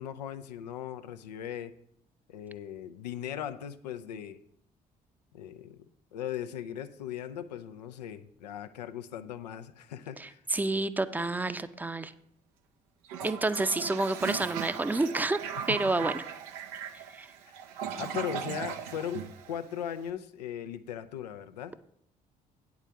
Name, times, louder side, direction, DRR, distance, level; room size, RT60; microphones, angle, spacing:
voice 1, 0.0-1.7 2.3-4.4 5.3-5.8 6.1-10.4 15.6-15.8 17.5-21.7, left 9 dB, 90° left, 10 dB, 0.5 m, -38 dB
voice 2, 10.2-12.1 13.2-15.4 15.7-16.2 16.9-17.3, right 2 dB, 10° right, 12 dB, 0.6 m, -29 dB
Toilet flush, 13.0-20.0, right 8 dB, 80° right, 0.6 m, -38 dB
9.0 x 4.8 x 6.7 m, 0.70 s
hypercardioid pair, 50°, 20 cm